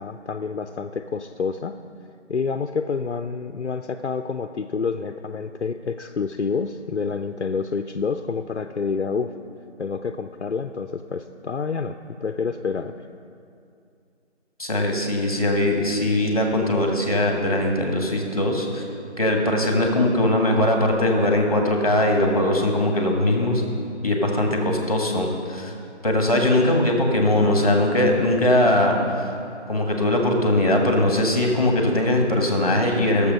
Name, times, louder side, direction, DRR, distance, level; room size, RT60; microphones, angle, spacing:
voice 1, 0.0-1.8 2.3-9.3 9.8-12.0 12.2-12.9, left 5 dB, 70° left, 8 dB, 0.6 m, -28 dB
voice 2, 14.6-18.8 19.2-23.6 24.0-25.7 26.0-29.3 29.7-33.3, left 1 dB, 30° left, 1 dB, 1.6 m, -20 dB
18.0 x 7.2 x 5.4 m, 2.5 s
figure-of-eight pair, 180°, 35 cm